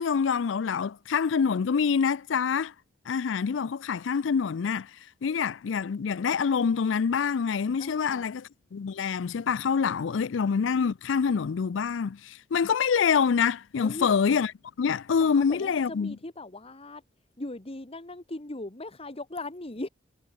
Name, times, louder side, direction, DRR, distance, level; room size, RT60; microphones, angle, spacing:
voice 1, 0.0-2.7 3.1-4.9 5.2-14.5 14.8-16.1, left 6 dB, 75° left, 0.4 m, -26 dB
voice 2, 7.8-8.3 10.0-10.3 13.8-14.1 15.2-17.0 17.4-19.9, left 2 dB, 30° left, 1.5 m, -39 dB
head